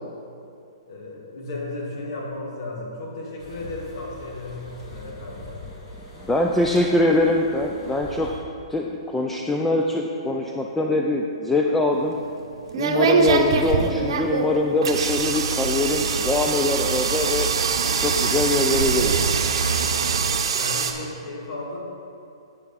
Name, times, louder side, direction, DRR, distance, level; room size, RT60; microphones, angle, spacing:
voice 1, 0.9-5.5 20.5-21.8, left 2 dB, 55° left, -2 dB, 2.1 m, -34 dB
sound 1, 3.4-8.4, left 1 dB, 35° left, 2.1 m, -41 dB
voice 2, 6.2-8.3 8.7-12.2 12.7-17.5 18.0-19.3, left 2 dB, 5° left, 0 dB, 0.5 m, -23 dB
sound 2, 11.9-20.9, right 5 dB, 65° right, 0.8 m, -24 dB
Bus, 14.9-20.4, right 4 dB, 90° right, 0.4 m, -28 dB
8.4 x 7.8 x 4.1 m, 2.5 s
hypercardioid pair, 135°, 3 cm